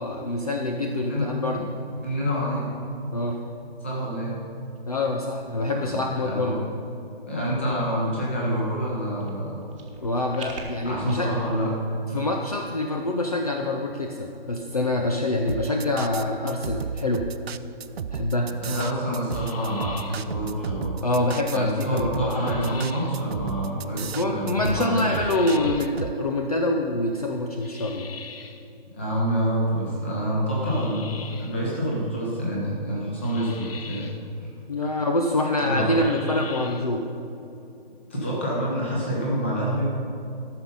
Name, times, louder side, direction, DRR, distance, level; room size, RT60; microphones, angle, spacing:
voice 1, 0.0-1.7 3.1-3.4 4.9-6.6 10.0-11.3 12.1-17.3 18.1-18.5 21.0-22.8 24.1-28.1 34.7-37.1, left 2 dB, 40° left, 2 dB, 0.5 m, -26 dB
voice 2, 0.9-1.3 2.0-2.7 3.8-4.4 5.7-6.6 7.3-9.6 10.8-11.7 18.4-21.0 21.5-25.1 28.9-34.1 34.4-34.5 35.6-36.0 38.1-39.9, equal, 10° left, -5 dB, 1.0 m, -27 dB
sound 1, 9.2-11.1, right 3 dB, 30° right, 1.2 m, -40 dB
sound 2, 15.5-26.1, right 7 dB, 85° right, 0.5 m, -34 dB
sound 3, 19.3-20.4 22.2-23.2 25.0-26.0 27.6-28.7 30.6-31.6 33.2-34.3 35.9-37.0, left 5 dB, 70° left, 0.8 m, -43 dB
13.5 x 6.3 x 5.4 m, 2.8 s
hypercardioid pair, 180°, 30 cm